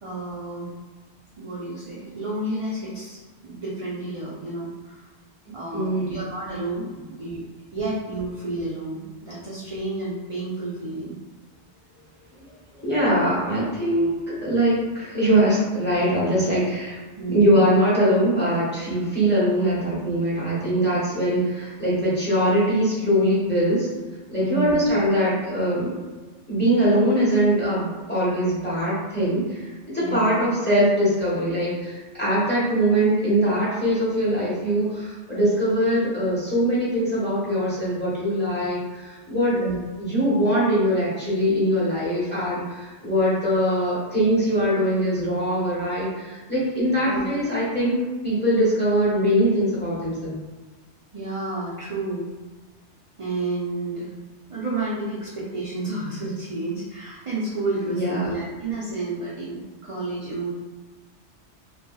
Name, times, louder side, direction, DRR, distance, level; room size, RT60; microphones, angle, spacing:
voice 1, 0.0-0.7 1.4-5.1 5.5-6.9 7.2-7.4 7.7-11.1 17.2-17.6 24.4-24.7 30.0-30.4 39.5-39.8 47.0-47.3 51.1-52.3 53.2-54.1 54.5-60.5, right 2 dB, 40° right, -7 dB, 0.5 m, -30 dB
voice 2, 5.7-6.2 12.8-17.0 17.3-23.9 24.3-25.9 26.5-39.7 40.0-48.0 48.2-50.4 57.9-58.3, equal, 10° left, -9 dB, 1.2 m, -22 dB
3.1 x 2.8 x 2.3 m, 1.3 s
omnidirectional pair, 1.2 m